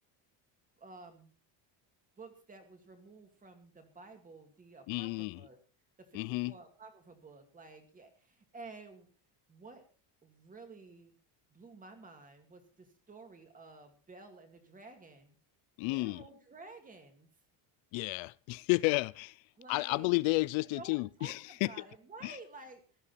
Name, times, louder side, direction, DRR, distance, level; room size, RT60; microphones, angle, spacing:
voice 1, 0.8-1.3 2.2-5.6 6.0-9.1 9.5-9.8 10.2-11.1 11.5-15.4 15.8-17.3 19.6-20.1 20.7-22.8, right 3 dB, 15° right, 2.4 m, -52 dB
voice 2, 4.9-5.4 6.1-6.5 15.8-16.2 17.9-19.4 19.7-21.7 22.2-22.4, left 24 dB, 75° left, 0.6 m, -32 dB
17.0 x 13.0 x 4.2 m
cardioid pair, 180°, 47 cm